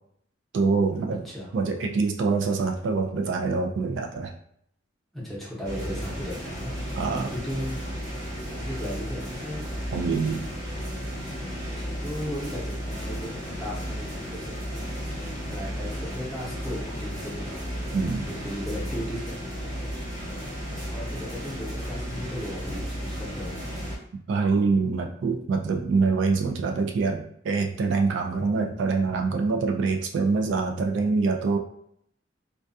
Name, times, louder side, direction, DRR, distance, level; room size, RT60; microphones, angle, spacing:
voice 1, 0.5-1.3 1.5-4.3 7.0-7.3 9.9-10.4 17.9-18.2 24.1-31.6, right 4 dB, 70° right, 3 dB, 0.3 m, -25 dB
voice 2, 5.1-9.9 11.4-20.1 20.4-23.6, equal, ahead, -6 dB, 0.7 m, -37 dB
sound 1, 5.6-24.0, equal, 55° right, 1.1 m, -34 dB
2.3 x 2.2 x 2.6 m, 0.70 s
head